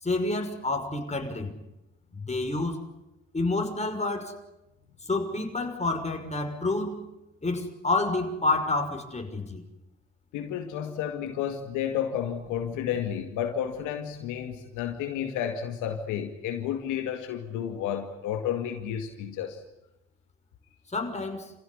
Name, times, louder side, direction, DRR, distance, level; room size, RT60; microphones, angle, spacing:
voice 1, 0.0-1.5 2.1-2.8 3.3-4.3 5.0-7.0 7.4-9.6 20.9-21.5, left 2 dB, 20° left, 4 dB, 6.1 m, -29 dB
voice 2, 10.3-19.6, left 9 dB, 80° left, 5 dB, 2.3 m, -31 dB
28.5 x 16.5 x 9.7 m, 0.92 s
hypercardioid pair, 55°, 30 cm